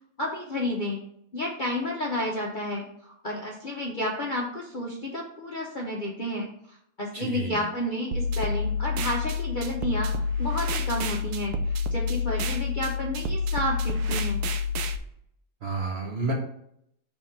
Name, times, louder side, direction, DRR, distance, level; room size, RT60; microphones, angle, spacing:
voice 1, 0.2-1.0 1.3-14.4, left 1 dB, 45° left, -2 dB, 0.7 m, -31 dB
voice 2, 7.1-7.6 15.6-16.3, right 3 dB, 45° right, 0 dB, 1.0 m, -30 dB
sound 1, 8.1-15.0, left 4 dB, 75° right, 1.1 m, -28 dB
5.1 x 3.6 x 5.6 m, 0.70 s
omnidirectional pair, 1.8 m